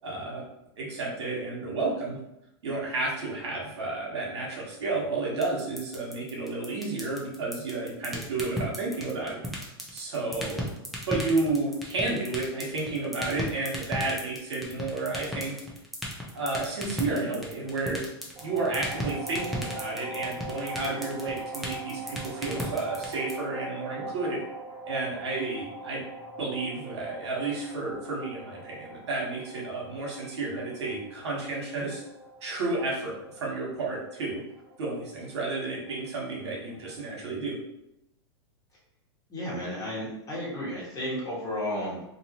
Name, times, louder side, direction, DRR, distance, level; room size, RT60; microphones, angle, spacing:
voice 1, 0.0-0.4 0.8-2.2 2.6-9.4 9.9-10.7 11.1-15.5 16.3-18.0 18.4-24.4 24.9-26.0 26.4-32.0 32.4-34.4 34.8-37.5, right 3 dB, 75° right, -3 dB, 1.1 m, -31 dB
sound 1, 5.4-23.3, left 1 dB, ahead, 0.7 m, -34 dB
sound 2, 18.4-36.9, right 2 dB, 35° right, 0.9 m, -42 dB
voice 2, 39.3-42.0, left 1 dB, 25° left, -6 dB, 1.4 m, -33 dB
2.7 x 2.6 x 2.9 m, 0.83 s
hypercardioid pair, 110°, 15 cm